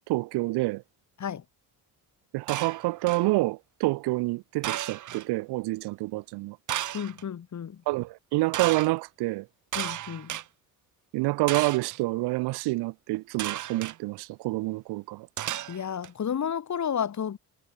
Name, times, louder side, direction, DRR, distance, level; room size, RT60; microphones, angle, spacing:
voice 1, 0.1-0.8 2.3-6.6 7.9-9.5 11.1-15.3, right 21 dB, 85° right, 1.6 m, -28 dB
sound 1, 2.5-3.3 4.6-5.3 6.7-7.2 8.5-8.9 9.7-10.4 11.5-12.0 13.4-14.0 15.4-16.1, right 12 dB, 50° right, 0.9 m, -33 dB
voice 2, 6.9-7.8 9.7-10.3 15.7-17.4, left 8 dB, 45° left, 3.5 m, -31 dB
supercardioid pair, 85°, 39 cm